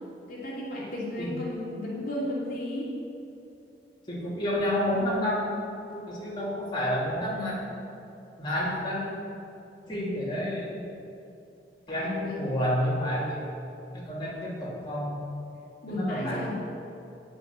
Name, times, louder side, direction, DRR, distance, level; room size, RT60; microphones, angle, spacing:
voice 1, 0.3-2.9 12.0-12.4 15.8-16.5, left 1 dB, 55° left, -6 dB, 2.7 m, -33 dB
voice 2, 4.1-5.5 5.9-7.6 8.4-9.1 9.9-10.9 11.9-13.4 13.9-15.2 15.9-16.5, equal, 25° left, -7 dB, 2.8 m, -29 dB
10.0 x 8.2 x 7.5 m, 2.7 s
head